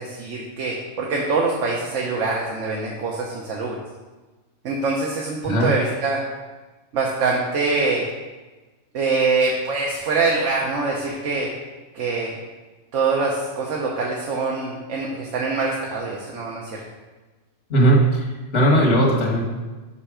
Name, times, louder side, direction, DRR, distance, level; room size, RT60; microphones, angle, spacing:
voice 1, 0.0-3.8 4.6-6.2 6.9-8.0 8.9-11.5 11.9-12.3 12.9-16.8, right 3 dB, 70° right, -2 dB, 1.2 m, -24 dB
voice 2, 17.7-18.2 18.5-19.5, right 1 dB, 65° left, -2 dB, 1.7 m, -17 dB
5.7 x 5.4 x 4.9 m, 1.2 s
omnidirectional pair, 1.3 m